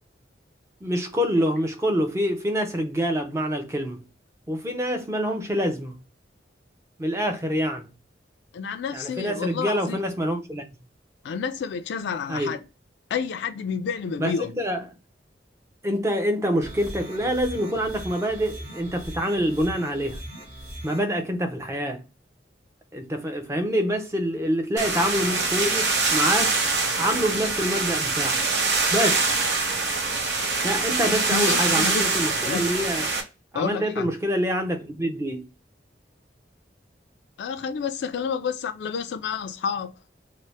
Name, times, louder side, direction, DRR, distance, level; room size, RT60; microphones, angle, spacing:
voice 1, 0.8-4.0 4.5-6.0 7.0-7.9 8.9-10.6 12.3-12.5 14.2-14.8 15.8-20.2 20.8-22.0 22.9-26.6 27.0-28.4 28.9-29.2 30.6-33.1 33.5-35.4, equal, 15° right, 0.4 m, -26 dB
voice 2, 8.5-10.0 11.2-12.6 13.1-14.5 31.0-32.1 32.5-32.7 33.5-34.1 37.4-39.9, left 6 dB, 70° left, 0.3 m, -30 dB
sound 1, 16.6-21.0, right 1 dB, 45° right, 1.2 m, -39 dB
sound 2, 24.8-33.2, right 4 dB, 70° right, 0.8 m, -24 dB
3.2 x 2.0 x 4.0 m
head